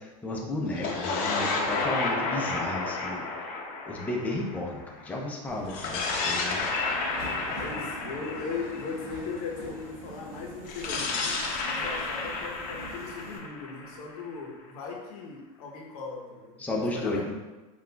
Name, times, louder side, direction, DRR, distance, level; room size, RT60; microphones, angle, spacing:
voice 1, 0.0-3.3 3.9-6.6 16.6-17.3, left 2 dB, 10° left, -2 dB, 0.5 m, -33 dB
sound 1, 0.7-5.1 5.7-9.6 10.6-14.5, left 3 dB, 45° left, 0.7 m, -32 dB
Subway metro underground, 5.5-13.4, right 1 dB, 75° right, 1.1 m, -44 dB
voice 2, 7.2-17.3, left 4 dB, 75° left, 0 dB, 0.8 m, -38 dB
5.7 x 2.4 x 2.2 m, 1.2 s
supercardioid pair, 115°, 19 cm